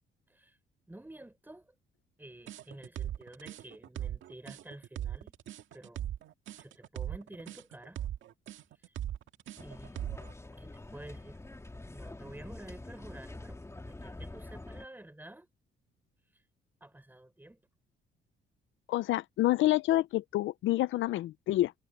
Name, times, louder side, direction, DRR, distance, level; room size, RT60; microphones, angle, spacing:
voice 1, 0.9-1.7 2.2-5.3 5.7-6.0 6.6-8.0 8.8-9.0 9.6-10.1 10.5-11.4 11.9-15.5 16.3-16.4 16.8-17.6, right 1 dB, 10° right, 6.2 m, -50 dB
sound 1, 2.5-10.3, right 11 dB, 75° right, 1.9 m, -39 dB
sound 2, 9.6-14.9, left 2 dB, 15° left, 3.3 m, -46 dB
voice 2, 18.9-21.7, left 15 dB, 75° left, 0.5 m, -28 dB
cardioid pair, 90°, 20 cm